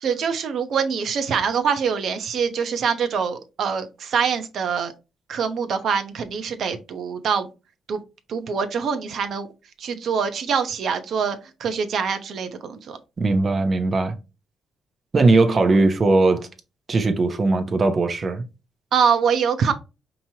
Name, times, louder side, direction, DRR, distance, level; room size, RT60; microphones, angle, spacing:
voice 1, 0.0-4.9 5.3-7.5 7.9-8.0 8.3-9.5 9.8-13.0 18.9-19.7, right 6 dB, 65° right, 0.9 m, -24 dB
voice 2, 13.2-14.1 15.1-16.5 16.9-18.4, right 3 dB, 40° right, 1.0 m, -19 dB
5.2 x 3.0 x 2.9 m
cardioid pair, 90°, 0 cm